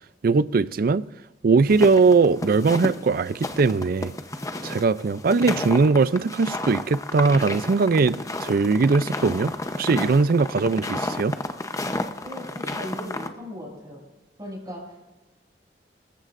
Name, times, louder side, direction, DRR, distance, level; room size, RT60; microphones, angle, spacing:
voice 1, 0.2-1.0 1.4-4.1 4.6-9.5 9.8-11.3, right 4 dB, 55° right, 0.4 m, -20 dB
sound 1, 1.7-13.3, left 2 dB, 20° left, 0.8 m, -32 dB
voice 2, 12.2-14.0 14.4-15.0, equal, 25° right, 6.7 m, -37 dB
27.0 x 14.5 x 2.6 m
head